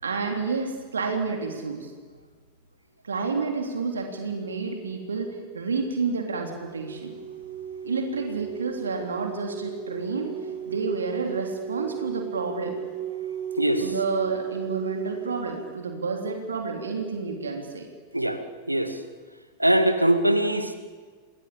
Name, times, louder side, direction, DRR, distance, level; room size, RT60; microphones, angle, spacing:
voice 1, 0.0-1.9 3.0-7.1 7.8-10.3 10.6-12.7 13.8-17.9, right 4 dB, 70° right, 3 dB, 3.5 m, -30 dB
sound 1, 6.6-15.7, right 8 dB, 45° right, 6.4 m, -35 dB
voice 2, 18.7-19.0 19.6-20.8, right 1 dB, 85° right, 9 dB, 2.3 m, -22 dB
29.5 x 20.0 x 8.7 m, 1.5 s
figure-of-eight pair, 90°, 0 cm